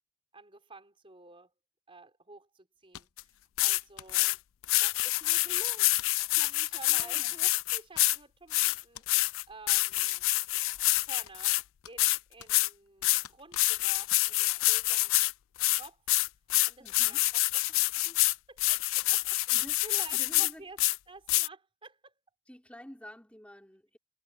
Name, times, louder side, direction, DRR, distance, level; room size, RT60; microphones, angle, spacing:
voice 1, 0.3-1.5 1.9-3.1 3.6-4.4 4.8-6.0 6.3-9.0 9.5-10.3 11.0-15.1 15.8-16.0 16.7-18.2 18.5-20.8 21.1-22.1, right 3 dB, 25° right, 4.0 m, -51 dB
sound 1, 2.9-3.3 4.0-4.2 5.0-5.4 6.0-6.3 7.0-7.2 7.5-7.6 8.0-8.4 9.0-9.1 10.0-10.4 11.0-11.6 11.8-12.7 13.0-13.8 14.1-14.2 14.6-14.8, left 10 dB, 80° left, 0.7 m, -49 dB
sound 2, 3.2-3.3 3.6-3.8 4.1-4.4 4.6-8.2 8.5-11.6 12.0-12.2 12.5-12.7 13.0-13.2 13.6-15.3 15.6-20.5 20.8-21.0 21.3-21.5, left 20 dB, 60° left, 0.3 m, -27 dB
voice 2, 6.9-7.3 16.8-17.2 19.5-19.8 20.1-20.7 22.5-24.0, equal, 5° left, 3.6 m, -49 dB
head